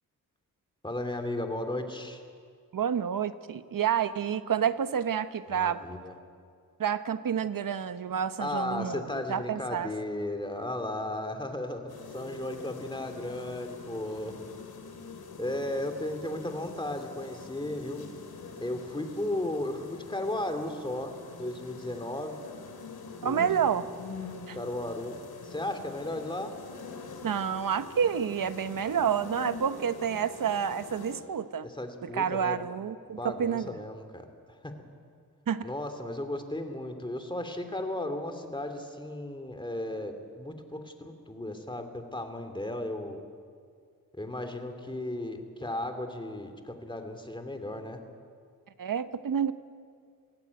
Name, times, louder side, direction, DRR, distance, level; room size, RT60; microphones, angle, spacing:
voice 1, 0.8-2.2 5.5-6.1 8.4-14.3 15.4-18.0 18.6-22.4 23.2-23.5 24.5-25.2 25.4-26.5 31.6-32.6 33.1-34.7 35.6-43.2 44.1-48.0, left 1 dB, 15° left, 6 dB, 2.5 m, -35 dB
voice 2, 2.7-5.8 6.8-9.9 23.2-23.9 24.5-24.6 27.2-31.7 32.0-33.7 35.5-35.6 48.8-49.5, right 8 dB, 65° right, 13 dB, 0.9 m, -29 dB
sound 1, 11.9-31.2, left 4 dB, 85° left, 2.6 m, -45 dB
22.5 x 16.5 x 9.4 m, 2.2 s
wide cardioid pair, 90°, 36 cm